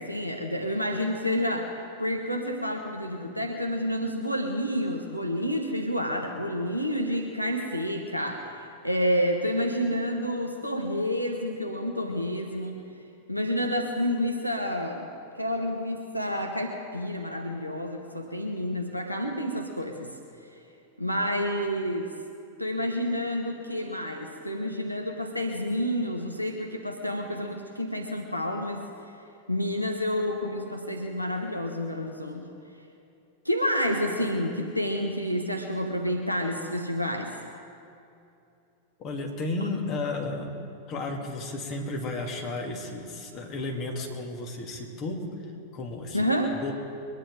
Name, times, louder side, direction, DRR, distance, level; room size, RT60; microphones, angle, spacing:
voice 1, 0.0-12.8 13.3-15.1 15.4-20.1 21.0-22.1 22.6-28.8 29.5-32.5 33.4-37.3 46.1-46.6, equal, 90° left, 3 dB, 1.2 m, -29 dB
voice 2, 39.0-40.5 40.9-45.3 45.7-46.3 46.5-46.7, left 2 dB, 35° left, 0 dB, 2.7 m, -33 dB
23.0 x 10.5 x 5.1 m, 2.7 s
figure-of-eight pair, 90°, 0 cm